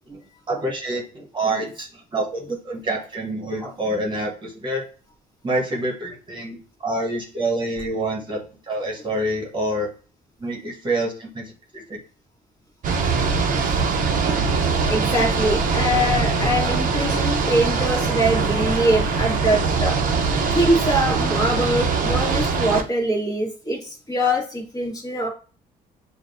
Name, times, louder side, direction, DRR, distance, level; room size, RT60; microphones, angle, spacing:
voice 1, 0.5-4.8 5.4-9.9 10.4-12.0, right 1 dB, 30° right, 0 dB, 1.1 m, -27 dB
sound 1, 12.8-22.8, right 4 dB, 50° right, 0.8 m, -22 dB
voice 2, 14.9-20.0 20.5-25.3, right 1 dB, 20° left, -2 dB, 1.6 m, -23 dB
6.6 x 2.3 x 2.6 m, 0.38 s
cardioid pair, 110°, 17 cm